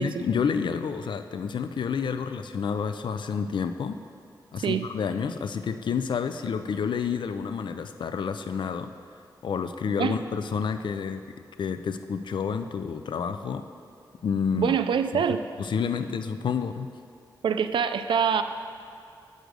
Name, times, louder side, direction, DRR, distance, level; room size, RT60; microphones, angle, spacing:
voice 1, 0.0-4.0 4.5-8.9 9.4-11.2 11.6-13.6 14.2-14.7 15.1-15.2 15.6-16.9, left 6 dB, 75° left, 9 dB, 0.4 m, -29 dB
voice 2, 14.5-15.4 17.4-18.4, right 7 dB, 85° right, 10 dB, 0.4 m, -24 dB
8.0 x 6.3 x 5.1 m, 2.4 s
wide cardioid pair, 90°, 8 cm